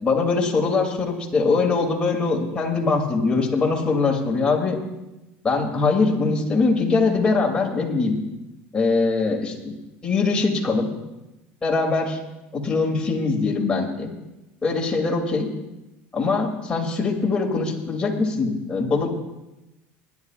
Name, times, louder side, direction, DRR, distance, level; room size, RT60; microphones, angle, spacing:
voice 1, 0.0-4.8 5.4-8.2 8.7-9.7 10.0-10.9 11.6-12.2 12.5-14.1 14.6-15.5 16.1-19.1, left 4 dB, 15° left, -1 dB, 2.7 m, -22 dB
24.0 x 11.0 x 2.5 m, 0.98 s
supercardioid pair, 115°, 5 cm